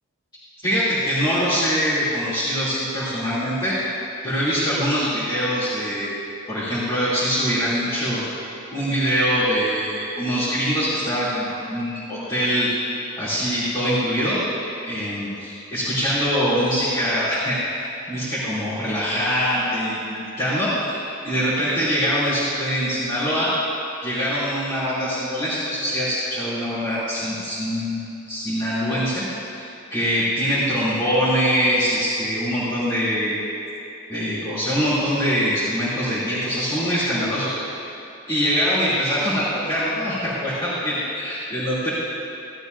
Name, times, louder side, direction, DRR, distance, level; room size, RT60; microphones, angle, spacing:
voice 1, 0.6-3.8 4.2-6.2 6.5-8.2 8.7-12.7 13.2-14.4 14.8-21.0 21.2-23.5 24.0-29.2 29.5-29.6 29.9-33.4 34.1-37.6 38.3-41.9, equal, 20° left, -15 dB, 2.9 m, -23 dB
16.5 x 12.0 x 2.7 m, 2.9 s
head